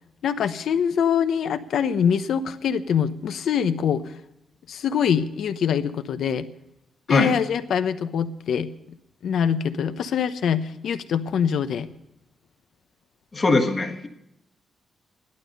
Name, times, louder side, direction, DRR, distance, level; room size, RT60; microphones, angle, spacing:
voice 1, 0.2-4.0 4.7-6.5 7.1-8.7 9.2-11.9, left 7 dB, 70° left, 10 dB, 0.9 m, -24 dB
voice 2, 13.3-14.1, left 3 dB, 25° left, 3 dB, 1.4 m, -21 dB
14.5 x 12.0 x 5.4 m, 0.86 s
wide cardioid pair, 170°, 0 cm